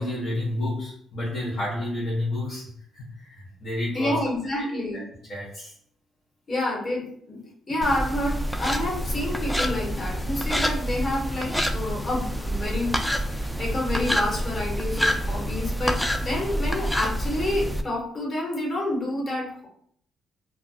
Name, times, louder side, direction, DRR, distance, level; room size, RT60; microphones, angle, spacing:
voice 1, 0.0-4.2 4.6-5.0 5.3-5.7, left 1 dB, 60° left, -7 dB, 0.9 m, -30 dB
voice 2, 3.9-5.0 6.5-12.9 13.3-19.7, left 1 dB, 40° left, -3 dB, 1.3 m, -29 dB
sound 1, 7.8-17.8, equal, 5° left, 0.3 m, -27 dB
2.4 x 2.3 x 4.0 m, 0.64 s
cardioid pair, 90°, 0 cm